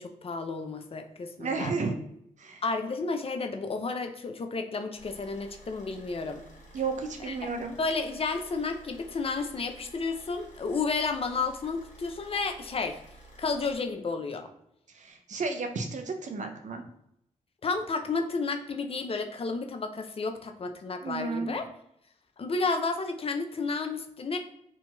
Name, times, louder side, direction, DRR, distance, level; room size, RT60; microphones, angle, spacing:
voice 1, 0.0-1.7 2.6-6.4 7.2-7.5 7.8-13.0 13.4-14.5 17.6-21.7 22.4-24.4, left 4 dB, 40° left, 5 dB, 0.5 m, -32 dB
voice 2, 1.4-2.0 2.4-2.6 6.7-7.8 14.9-16.9 21.0-21.6, right 4 dB, 55° right, 5 dB, 0.5 m, -32 dB
Car / Idling, 5.0-13.8, right 1 dB, 55° left, 0.9 m, -52 dB
2.8 x 2.7 x 2.3 m, 0.76 s
supercardioid pair, 40°, 15 cm